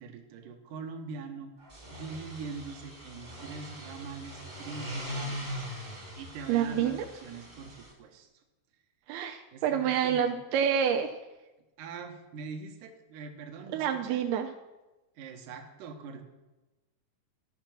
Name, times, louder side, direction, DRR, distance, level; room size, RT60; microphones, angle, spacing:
voice 1, 0.0-1.6 1.9-5.7 6.2-8.3 9.5-10.4 11.8-14.2 15.2-16.2, right 4 dB, 65° right, 3 dB, 2.3 m, -43 dB
sound 1, 1.6-7.9, equal, 25° right, 1.2 m, -41 dB
voice 2, 6.5-7.0 9.1-11.2 13.7-14.5, right 8 dB, 80° right, 4 dB, 2.5 m, -28 dB
12.5 x 6.0 x 6.0 m, 1.1 s
omnidirectional pair, 4.6 m